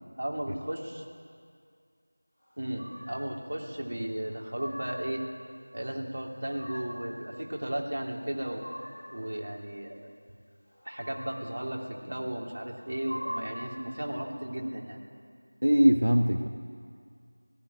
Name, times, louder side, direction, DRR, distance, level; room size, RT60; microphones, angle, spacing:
voice 1, 0.2-1.0 2.6-5.2 5.7-8.6 9.1-10.1 10.8-15.0, right 1 dB, 45° right, -1 dB, 2.9 m, -35 dB
sound 1, 2.8-3.4 4.2-5.2 6.2-7.2 8.1-9.2 10.8-11.6 12.7-13.8, equal, 25° left, 5.1 m, -42 dB
voice 2, 15.6-16.5, equal, 80° right, 5 dB, 1.4 m, -21 dB
19.0 x 15.0 x 9.8 m, 2.2 s
figure-of-eight pair, 175°, 0 cm